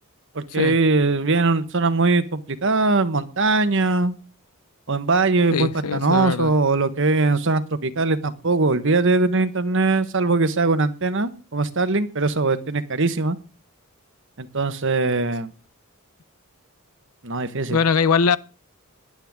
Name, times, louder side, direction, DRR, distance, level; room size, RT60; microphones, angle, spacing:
voice 1, 0.3-4.1 4.9-13.4 14.4-15.5 17.2-17.8, right 3 dB, 55° right, 1.3 m, -21 dB
voice 2, 5.5-6.5 17.7-18.4, left 5 dB, 80° left, 0.7 m, -21 dB
18.0 x 11.5 x 3.7 m
head